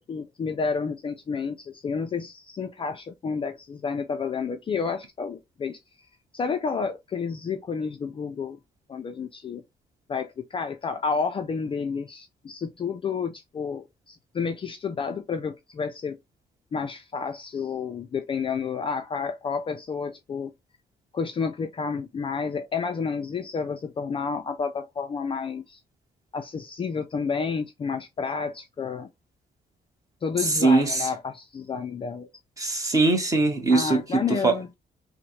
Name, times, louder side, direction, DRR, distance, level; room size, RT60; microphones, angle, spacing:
voice 1, 0.1-5.8 6.3-8.6 8.9-9.6 10.1-16.2 16.7-20.5 21.1-25.8 26.3-29.1 30.2-32.3 33.7-34.7, left 5 dB, 30° left, 0.4 m, -30 dB
voice 2, 30.4-31.1 32.6-34.5, right 3 dB, 20° right, 1.0 m, -22 dB
6.0 x 2.1 x 3.0 m
wide cardioid pair, 175°, 18 cm